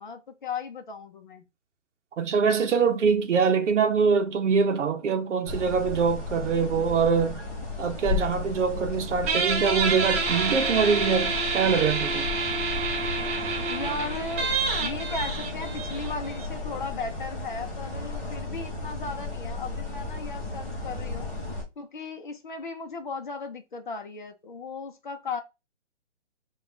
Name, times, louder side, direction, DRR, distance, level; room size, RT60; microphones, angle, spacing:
voice 1, 0.0-1.4 13.7-14.5 14.8-21.3 21.8-25.4, left 3 dB, 40° left, 0.7 m, -36 dB
voice 2, 2.2-7.4 7.8-12.3, right 5 dB, 75° right, 0.7 m, -24 dB
sound 1, 5.4-21.6, left 3 dB, 15° left, 1.1 m, -34 dB
Guitar, 9.3-16.4, right 4 dB, 10° right, 0.7 m, -28 dB
3.4 x 2.4 x 3.7 m
hypercardioid pair, 165°, 37 cm